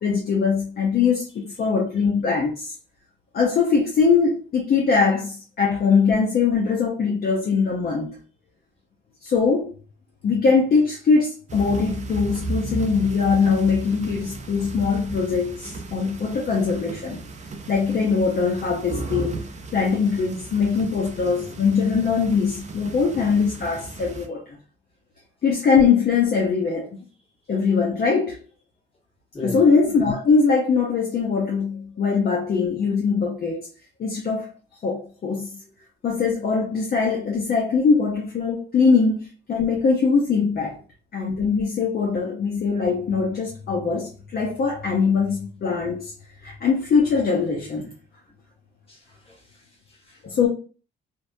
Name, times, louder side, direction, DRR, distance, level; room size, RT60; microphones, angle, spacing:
voice 1, 0.0-2.7 3.3-8.2 9.2-9.7 10.2-17.2 17.7-19.4 19.7-24.6 25.4-27.0 27.5-28.4 29.4-33.7 34.0-34.5 34.8-35.6 36.0-40.8 41.1-46.1 46.4-47.9 50.2-50.5, left 5 dB, 50° left, 0.6 m, -21 dB
sound 1, 11.5-24.3, right 3 dB, 35° right, 0.5 m, -35 dB
voice 2, 48.9-50.2, left 1 dB, 30° left, 1.3 m, -37 dB
2.6 x 2.2 x 2.5 m
cardioid pair, 90°, 20 cm